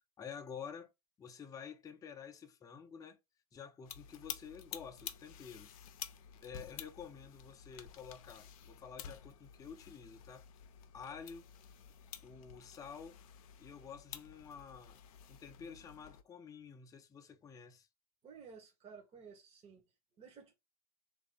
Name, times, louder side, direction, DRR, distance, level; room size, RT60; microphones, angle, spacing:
voice 1, 0.2-0.9 1.2-3.2 3.5-5.7 6.4-10.4 10.9-11.5 12.2-13.2 13.6-15.0 15.3-17.9, left 6 dB, 15° left, 0.6 m, -50 dB
sound 1, 3.8-16.2, left 9 dB, 60° left, 0.6 m, -51 dB
voice 2, 18.2-19.8 20.2-20.6, right 6 dB, 30° right, 1.0 m, -54 dB
3.2 x 2.6 x 3.5 m
hypercardioid pair, 90°, 20 cm